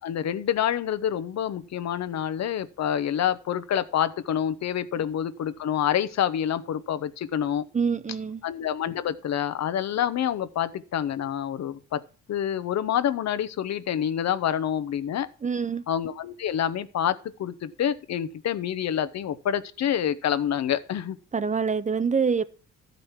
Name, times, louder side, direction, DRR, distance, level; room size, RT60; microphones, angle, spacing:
voice 1, 0.0-7.7 8.4-12.0 12.3-15.3 15.9-21.2, left 9 dB, 60° left, 0.8 m, -27 dB
voice 2, 7.7-8.4 15.4-15.8 21.3-22.4, right 5 dB, 25° right, 0.6 m, -25 dB
12.5 x 5.3 x 5.7 m
cardioid pair, 90°, 30 cm